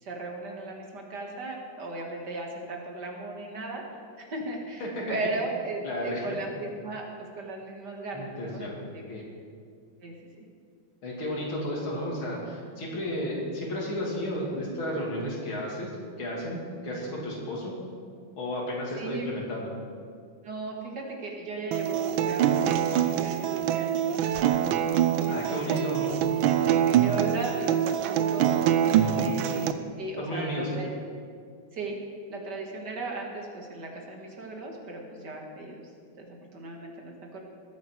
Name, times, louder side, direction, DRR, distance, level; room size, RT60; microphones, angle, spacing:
voice 1, 0.0-3.8 4.2-9.2 10.0-10.5 18.9-19.3 20.4-24.6 25.2-26.1 26.5-28.5 28.8-29.7 30.0-30.9 31.7-32.0 32.3-35.9 36.2-37.4, right 2 dB, 55° right, 1 dB, 2.3 m, -37 dB
voice 2, 4.8-5.2 5.8-6.3 8.1-8.8 9.1-9.2 11.0-15.9 16.2-17.7 18.4-19.7 25.3-26.1 29.0-29.3 30.2-30.7, left 1 dB, 85° left, -3 dB, 3.5 m, -33 dB
Acoustic guitar, 21.7-29.7, right 10 dB, 85° right, 1.4 m, -25 dB
21.0 x 8.4 x 4.6 m, 2.2 s
omnidirectional pair, 2.2 m